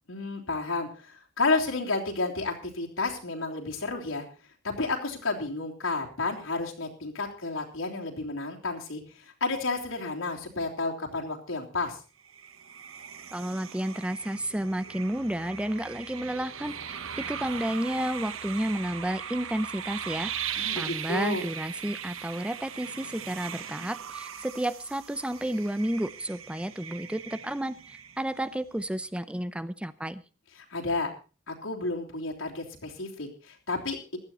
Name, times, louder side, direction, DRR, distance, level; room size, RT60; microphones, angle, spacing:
voice 1, 0.1-4.3 4.6-12.0 20.5-21.4 30.6-31.1 31.5-34.2, left 3 dB, 90° left, -1 dB, 3.4 m, -31 dB
ufo atmosphere, 12.2-28.5, right 8 dB, 90° right, 1.0 m, -39 dB
voice 2, 13.3-17.0 17.3-20.3 20.8-30.2, right 1 dB, 5° right, 15 dB, 0.6 m, -31 dB
16.0 x 12.0 x 4.2 m, 0.35 s
head